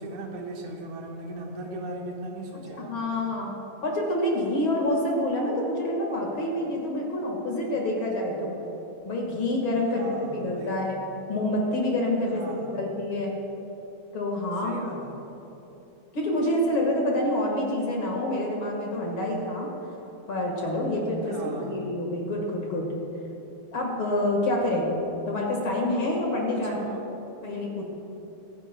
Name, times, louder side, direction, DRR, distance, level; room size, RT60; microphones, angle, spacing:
voice 1, 0.0-3.0 9.9-10.9 12.3-12.9 14.6-15.2 21.2-21.9 26.5-27.1, right 2 dB, 90° right, 1 dB, 2.6 m, -38 dB
voice 2, 2.7-3.5 3.8-8.5 9.0-11.0 11.3-13.3 14.1-15.0 16.1-19.7 20.3-22.9 23.7-24.9 25.3-26.7 27.4-27.9, left 1 dB, 50° left, -1 dB, 2.2 m, -27 dB
24.0 x 9.9 x 2.3 m, 3.0 s
omnidirectional pair, 3.3 m